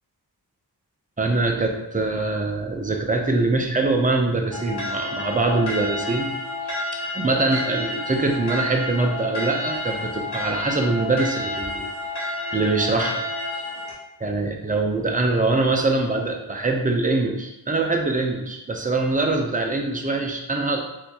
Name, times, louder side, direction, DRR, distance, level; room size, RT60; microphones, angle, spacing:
voice 1, 1.2-6.3 6.9-11.9 12.5-13.2 14.2-20.8, right 3 dB, 20° right, 2 dB, 0.6 m, -23 dB
sound 1, 4.5-13.9, left 1 dB, 75° left, 1.1 m, -30 dB
4.1 x 2.6 x 2.8 m, 0.93 s
wide cardioid pair, 65°, 40 cm